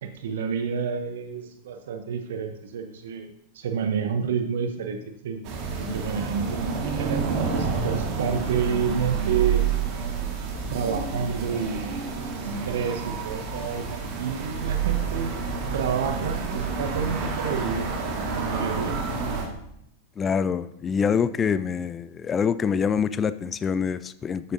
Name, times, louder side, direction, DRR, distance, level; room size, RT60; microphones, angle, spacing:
voice 1, 0.0-3.3 3.5-5.5 5.8-9.6 10.7-12.0 12.4-15.4 15.7-17.9 18.3-19.0, right 6 dB, 60° right, 7 dB, 0.8 m, -29 dB
sound 1, 5.4-19.5, right 5 dB, 45° right, 1.7 m, -29 dB
voice 2, 20.2-24.5, left 6 dB, 20° left, 15 dB, 0.4 m, -25 dB
11.0 x 8.3 x 2.7 m, 0.76 s
figure-of-eight pair, 90°, 0 cm